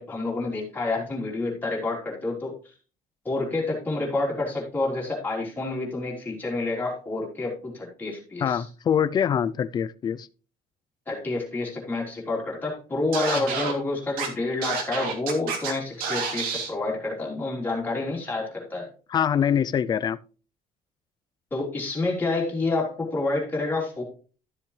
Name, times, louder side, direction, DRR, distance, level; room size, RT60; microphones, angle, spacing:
voice 1, 0.0-2.7 3.2-8.7 11.0-18.9 21.5-24.0, left 2 dB, 15° left, 3.5 m, -28 dB
voice 2, 8.4-10.3 13.3-13.4 19.1-20.2, left 8 dB, 30° left, 0.4 m, -24 dB
Scratching (performance technique), 13.1-13.7 14.2-14.3 14.6-15.7 16.0-16.7, right 5 dB, 80° right, 2.7 m, -29 dB
13.0 x 7.4 x 3.2 m
cardioid pair, 180°, 15 cm